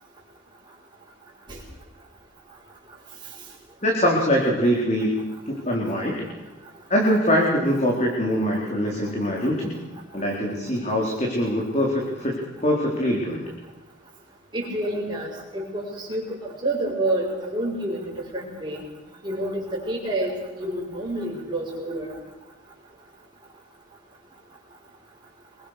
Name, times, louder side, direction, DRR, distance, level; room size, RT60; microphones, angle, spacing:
voice 1, 3.8-6.3 6.9-9.8 10.1-13.4, equal, 35° left, -2 dB, 4.4 m, -23 dB
voice 2, 14.5-16.2 16.6-18.8 19.2-22.1, right 1 dB, 20° right, -7 dB, 6.3 m, -28 dB
26.0 x 23.0 x 6.8 m, 1.1 s
head